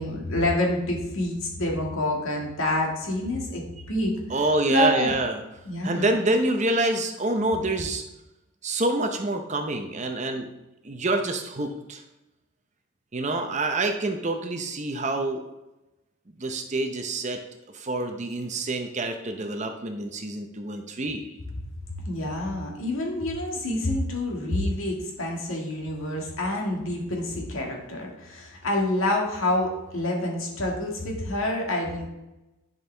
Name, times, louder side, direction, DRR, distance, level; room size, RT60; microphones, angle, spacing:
voice 1, 0.0-4.1 4.7-5.1 5.7-6.1 22.1-32.1, left 1 dB, 70° left, -1 dB, 2.0 m, -27 dB
voice 2, 4.3-5.4 5.8-8.0 8.6-10.5 10.8-12.0 13.1-15.4 16.4-17.4 17.7-21.2, right 2 dB, 30° right, 5 dB, 0.7 m, -27 dB
10.5 x 5.4 x 3.4 m, 0.96 s
head